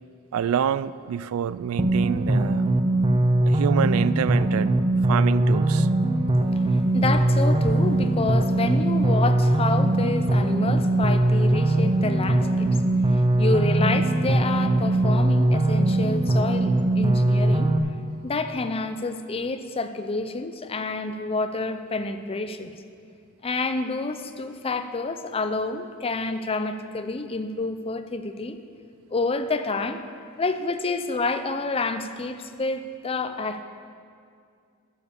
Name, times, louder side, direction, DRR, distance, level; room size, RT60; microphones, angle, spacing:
voice 1, 0.3-2.7 3.5-4.8 5.1-5.9, right 8 dB, 75° right, 16 dB, 0.3 m, -26 dB
sound 1, 1.8-17.8, right 1 dB, 25° right, 0.6 m, -21 dB
voice 2, 6.5-12.8 13.1-17.7 18.2-22.7 23.4-28.6 29.1-30.0 30.4-33.6, left 3 dB, 25° left, 9 dB, 0.5 m, -28 dB
10.0 x 6.8 x 7.0 m, 2.3 s
head